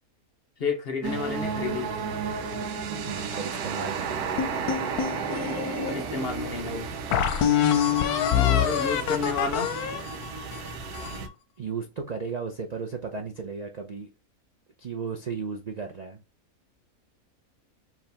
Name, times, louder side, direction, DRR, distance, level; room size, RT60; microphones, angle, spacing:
voice 1, 0.6-1.9 5.9-6.9 8.3-9.7, left 4 dB, 50° left, 0.8 m, -31 dB
sound 1, 1.0-11.3, right 5 dB, 85° right, 1.2 m, -33 dB
voice 2, 3.0-4.4 11.6-14.1 14.8-16.2, right 5 dB, 65° right, 0.4 m, -35 dB
sound 2, 4.4-5.9 6.5-6.6 7.1-11.3, left 9 dB, 85° left, 1.1 m, -25 dB
4.8 x 2.8 x 3.3 m
omnidirectional pair, 1.6 m